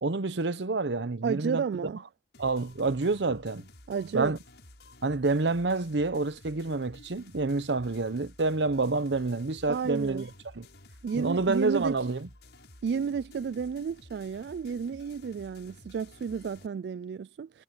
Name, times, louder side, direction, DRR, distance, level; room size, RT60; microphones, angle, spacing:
voice 1, 0.0-1.9 2.4-3.7 4.1-4.4 5.0-10.3 10.6-10.7 11.1-12.3, right 3 dB, 85° right, 0.8 m, -28 dB
voice 2, 1.2-2.0 3.9-4.3 9.7-10.3 11.0-12.0 12.8-17.6, right 6 dB, 70° right, 0.3 m, -32 dB
sound 1, 2.3-16.7, left 2 dB, 75° left, 7.0 m, -53 dB
head